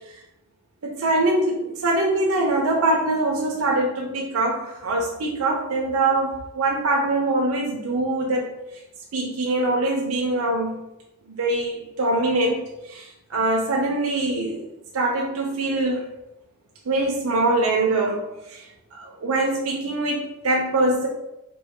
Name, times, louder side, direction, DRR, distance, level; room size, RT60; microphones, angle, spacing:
voice 1, 0.8-8.5 9.1-10.7 11.3-14.7 14.9-16.0 16.9-18.6 18.9-21.1, right 2 dB, 85° right, -1 dB, 0.6 m, -23 dB
4.1 x 2.7 x 3.6 m, 0.92 s
head